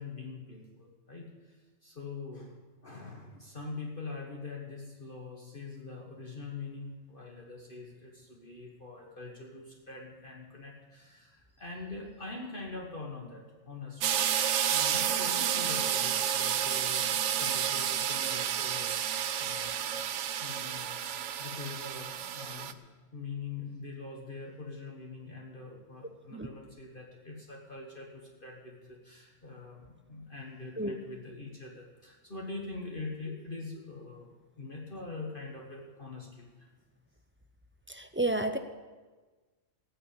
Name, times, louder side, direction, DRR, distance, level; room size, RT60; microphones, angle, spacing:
voice 1, 0.0-2.5 2.8-14.2 14.7-20.0 20.4-22.7 23.1-34.3 34.6-36.7, left 3 dB, 40° left, -1 dB, 1.6 m, -43 dB
sound 1, 14.0-22.7, right 9 dB, 65° right, 1.0 m, -30 dB
voice 2, 37.9-38.6, right 2 dB, 15° right, 8 dB, 0.4 m, -31 dB
18.5 x 6.4 x 8.6 m, 1.3 s
omnidirectional pair, 1.4 m